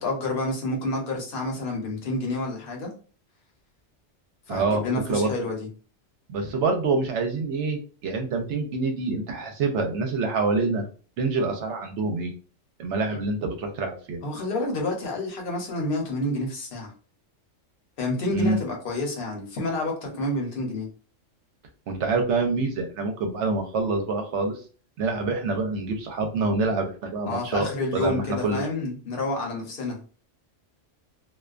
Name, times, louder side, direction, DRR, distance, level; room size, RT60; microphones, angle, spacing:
voice 1, 0.0-2.9 4.5-5.7 14.2-16.9 18.0-20.9 27.3-30.0, left 2 dB, 50° left, 0 dB, 0.9 m, -29 dB
voice 2, 4.5-5.3 6.3-10.9 11.2-12.3 12.8-14.2 18.3-18.6 21.9-24.6 25.0-28.6, right 3 dB, 70° right, 4 dB, 0.8 m, -26 dB
2.4 x 2.2 x 2.4 m, 0.38 s
omnidirectional pair, 1.3 m